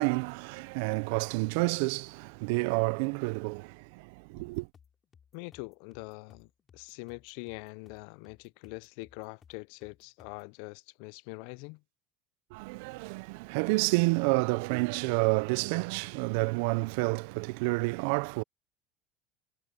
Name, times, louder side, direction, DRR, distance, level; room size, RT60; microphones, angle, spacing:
voice 1, 0.0-4.7 12.5-18.4, right 28 dB, 75° right, 0.3 m, -29 dB
sound 1, 4.4-10.5, left 7 dB, 30° left, 3.1 m, -62 dB
voice 2, 5.3-6.5 6.7-11.8, left 28 dB, 75° left, 0.3 m, -43 dB
cardioid pair, 145°, 0 cm